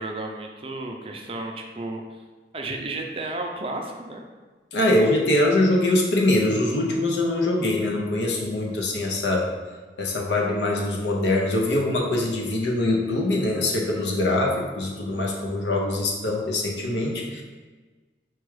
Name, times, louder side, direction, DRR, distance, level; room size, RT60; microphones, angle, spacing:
voice 1, 0.0-2.0 2.5-4.2 4.8-5.4, right 2 dB, 30° right, 2 dB, 0.4 m, -33 dB
voice 2, 4.7-9.5 10.0-17.4, left 1 dB, 85° left, -1 dB, 0.8 m, -23 dB
4.5 x 2.4 x 4.7 m, 1.3 s
head